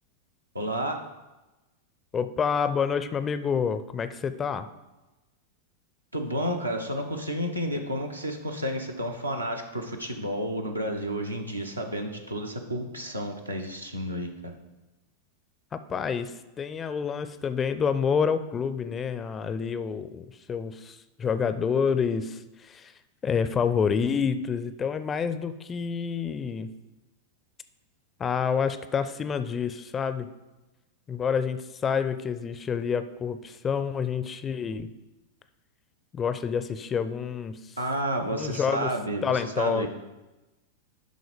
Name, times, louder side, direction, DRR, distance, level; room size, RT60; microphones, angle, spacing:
voice 1, 0.5-1.1 6.1-14.5 37.8-39.9, equal, 85° right, 3 dB, 0.9 m, -31 dB
voice 2, 2.1-4.7 15.9-22.9 23.2-26.7 28.2-30.3 31.1-34.9 36.1-37.6 38.2-38.9 39.2-39.9, left 6 dB, 20° left, 12 dB, 0.4 m, -28 dB
10.5 x 3.9 x 5.0 m, 1.1 s
figure-of-eight pair, 90°, 0 cm